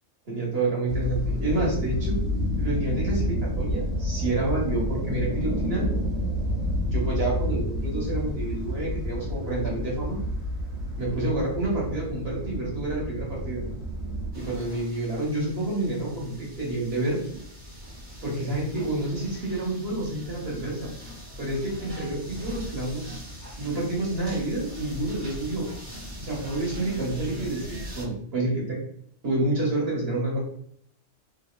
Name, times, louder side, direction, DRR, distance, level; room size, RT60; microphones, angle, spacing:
voice 1, 0.3-2.2 2.5-5.9 6.8-10.2 11.0-13.6 14.3-17.2 18.2-20.9 21.4-23.2 23.6-25.7 26.2-28.8 29.2-30.4, right 2 dB, 55° right, -4 dB, 1.3 m, -28 dB
sound 1, 0.9-14.3, equal, 80° right, 1.4 m, -29 dB
sound 2, 14.3-28.1, equal, 20° right, 0.8 m, -41 dB
2.9 x 2.6 x 2.4 m, 0.66 s
omnidirectional pair, 1.3 m